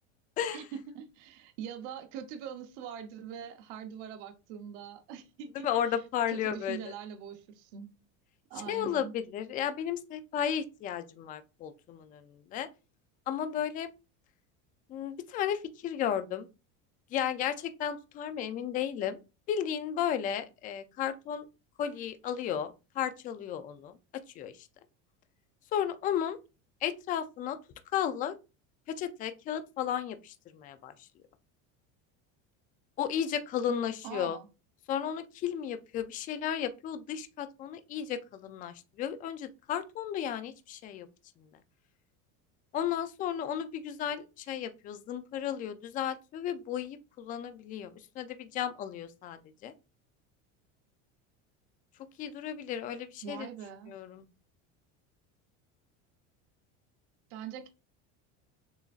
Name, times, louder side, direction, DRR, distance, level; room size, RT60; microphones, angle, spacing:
voice 1, 0.5-6.0 6.3-7.9 8.5-9.1 34.0-34.5 53.2-53.9 57.3-57.7, right 8 dB, 80° right, 0.8 m, -43 dB
voice 2, 5.6-6.9 8.7-12.7 13.3-13.9 14.9-16.5 17.1-19.2 19.5-21.5 21.8-24.0 24.4-24.7 25.7-26.4 26.8-27.6 27.9-28.3 28.9-31.1 33.0-34.4 34.9-41.1 42.7-49.7 52.2-53.5 53.9-54.2, left 9 dB, 25° left, 0.3 m, -34 dB
6.9 x 2.5 x 2.4 m
cardioid pair, 155°, 34 cm